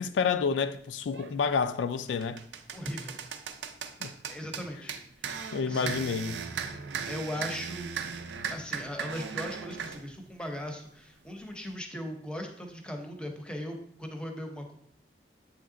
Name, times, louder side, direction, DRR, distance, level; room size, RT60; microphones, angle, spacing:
voice 1, 0.0-2.4 4.0-4.1 5.5-6.4, left 5 dB, 85° left, 0.3 m, -29 dB
sound 1, 1.1-1.3 1.8-10.0, right 6 dB, 75° right, 0.5 m, -37 dB
voice 2, 2.7-3.2 4.3-5.3 5.6-6.1 7.0-7.9 8.5-14.7, equal, 5° left, 0.7 m, -38 dB
8.0 x 3.1 x 3.8 m
head